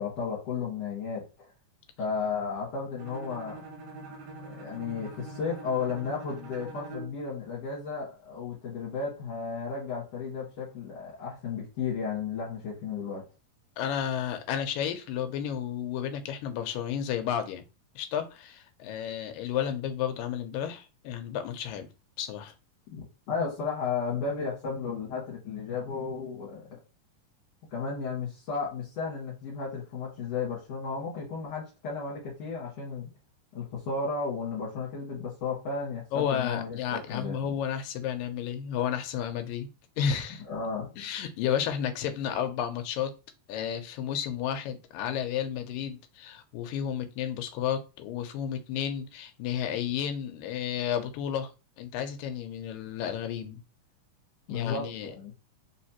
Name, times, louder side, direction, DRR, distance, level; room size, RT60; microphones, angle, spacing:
voice 1, 0.0-1.5 2.0-3.7 4.4-13.2 22.9-26.8 27.7-33.1 33.5-37.6 40.4-40.9 54.5-55.3, left 5 dB, 55° left, 2.4 m, -34 dB
Bowed string instrument, 3.0-7.2, right 2 dB, 65° right, 1.8 m, -44 dB
voice 2, 13.8-17.6 18.0-21.9 22.2-22.5 36.1-39.7 40.0-40.4 41.0-43.1 43.5-51.5 51.8-53.6 54.5-55.1, left 9 dB, 90° left, 2.3 m, -32 dB
5.0 x 3.2 x 2.9 m
omnidirectional pair, 3.9 m